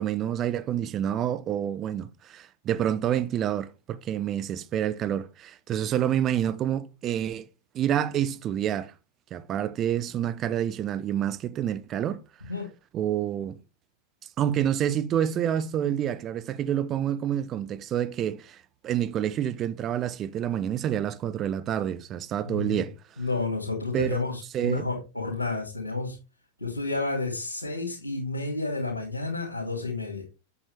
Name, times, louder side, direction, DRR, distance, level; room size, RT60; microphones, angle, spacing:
voice 1, 0.0-7.5 7.7-8.9 9.3-12.2 12.9-13.6 14.4-23.0 23.9-24.2 24.5-24.9, right 10 dB, 30° right, 0.7 m, -28 dB
voice 2, 22.4-22.8 23.2-26.2 26.6-30.2, left 3 dB, 80° left, 2.6 m, -30 dB
8.4 x 7.2 x 3.4 m
figure-of-eight pair, 90°, 0 cm